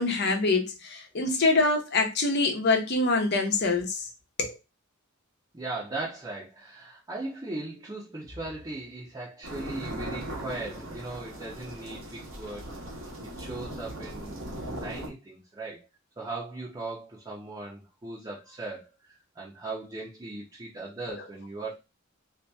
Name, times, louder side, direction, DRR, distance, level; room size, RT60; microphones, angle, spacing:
voice 1, 0.0-4.1 4.4-4.5, left 3 dB, 55° left, 0.9 m, -25 dB
voice 2, 5.5-12.7 13.4-15.9 16.2-18.9 19.3-21.8, right 2 dB, 20° right, 0.8 m, -38 dB
sound 1, 9.4-15.1, right 1 dB, 70° right, 1.1 m, -39 dB
2.8 x 2.6 x 3.4 m
head